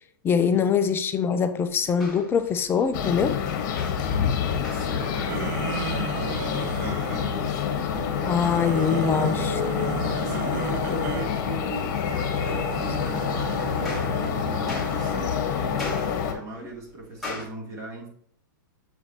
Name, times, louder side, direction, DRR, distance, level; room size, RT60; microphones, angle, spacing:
voice 1, 0.2-3.4 8.3-9.6, left 7 dB, 20° left, 0.5 m, -23 dB
sound 1, 1.7-17.5, left 2 dB, ahead, 2.7 m, -44 dB
sound 2, 2.9-16.3, left 7 dB, 55° left, 1.4 m, -27 dB
voice 2, 4.7-18.1, right 3 dB, 30° right, 2.6 m, -40 dB
sound 3, 5.3-7.3 8.1-11.3 12.0-15.5, right 11 dB, 60° right, 0.4 m, -35 dB
7.2 x 5.0 x 2.9 m
hypercardioid pair, 125°, 11 cm